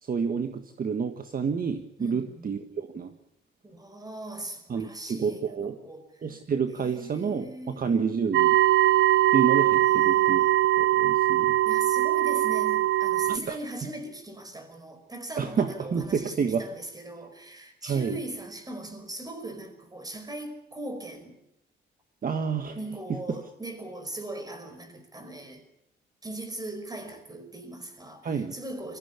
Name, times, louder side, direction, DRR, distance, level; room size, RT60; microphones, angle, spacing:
voice 1, 0.0-3.1 4.7-5.7 6.2-8.6 9.3-10.4 10.8-11.6 13.3-13.6 15.4-16.6 17.8-18.2 22.2-22.7 23.1-23.2 28.2-28.5, right 6 dB, 45° right, 7 dB, 1.6 m, -29 dB
voice 2, 2.0-2.5 3.6-6.2 6.8-8.0 9.8-10.6 11.6-21.4 22.7-25.6 26.2-29.0, right 1 dB, 20° right, 8 dB, 5.2 m, -40 dB
sound 1, 8.3-13.4, right 14 dB, 70° right, 0.8 m, -21 dB
22.0 x 15.5 x 8.3 m, 0.84 s
cardioid pair, 90°, 20 cm